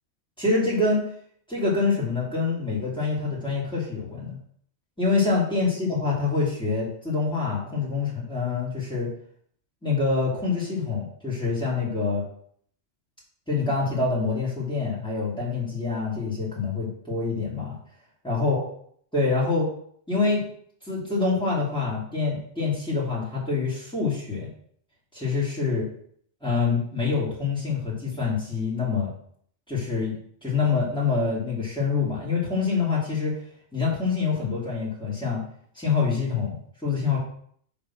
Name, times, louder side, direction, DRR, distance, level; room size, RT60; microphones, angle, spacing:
voice 1, 0.4-1.0 1.5-4.4 5.0-9.1 9.8-12.2 13.5-17.8 18.2-18.6 19.1-19.7 20.1-20.4 20.9-24.5 25.1-25.9 26.4-29.1 29.7-33.3 33.7-35.4 35.8-37.2, left 4 dB, 5° left, -7 dB, 2.9 m, -26 dB
6.4 x 4.3 x 5.9 m, 0.63 s
omnidirectional pair, 1.2 m